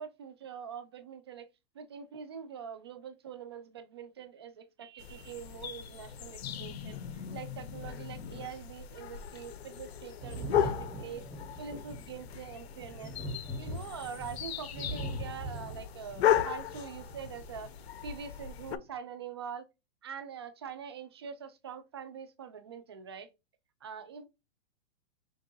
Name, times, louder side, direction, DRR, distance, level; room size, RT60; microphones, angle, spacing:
voice 1, 0.0-1.5 1.7-11.2 11.6-17.7 18.0-19.7 20.0-23.3 23.8-24.2, right 7 dB, 25° right, 0.3 m, -44 dB
sound 1, 5.0-18.8, left 10 dB, 75° left, 0.7 m, -36 dB
Thunder, 10.2-17.5 18.7-18.8, right 1 dB, ahead, 0.7 m, -41 dB
5.1 x 3.6 x 2.7 m
hypercardioid pair, 175°, 32 cm